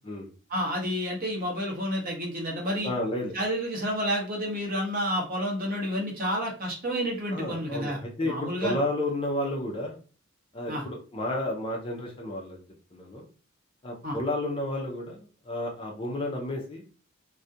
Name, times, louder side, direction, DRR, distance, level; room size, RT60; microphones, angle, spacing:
voice 1, 0.5-2.9 3.3-8.7 10.7-10.8 14.0-14.2, equal, 40° right, -1 dB, 0.8 m, -30 dB
voice 2, 2.8-3.3 7.3-10.0 10.5-12.6 12.9-13.2 13.8-16.8, left 1 dB, 25° left, 0 dB, 0.4 m, -31 dB
2.3 x 2.1 x 2.6 m, 0.37 s
head